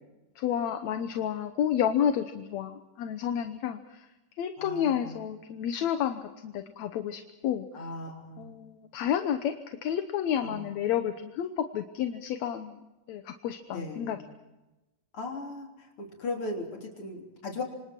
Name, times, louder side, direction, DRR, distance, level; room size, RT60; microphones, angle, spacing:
voice 1, 0.4-4.1 4.4-7.9 8.4-12.8 13.1-14.2, left 9 dB, 65° left, 8 dB, 2.0 m, -30 dB
voice 2, 4.6-5.2 7.7-8.5 10.4-10.8 13.7-14.3 15.1-17.6, left 2 dB, 40° left, 1 dB, 4.3 m, -38 dB
27.0 x 26.5 x 4.5 m, 1.0 s
omnidirectional pair, 3.8 m